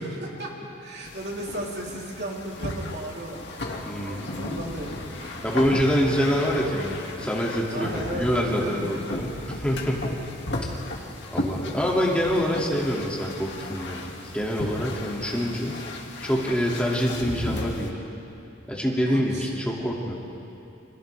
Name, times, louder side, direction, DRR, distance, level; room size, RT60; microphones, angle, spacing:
voice 1, 0.0-3.7 4.0-5.5 7.7-9.0 19.1-19.5, right 1 dB, 60° right, -3 dB, 3.5 m, -35 dB
sound 1, 1.0-17.9, left 1 dB, 60° left, 2.3 m, -35 dB
voice 2, 3.9-4.2 5.4-10.1 10.7-10.8 11.3-15.8 16.2-17.9 18.7-20.1, equal, 5° left, -4 dB, 2.4 m, -26 dB
30.0 x 27.5 x 3.5 m, 2.9 s
head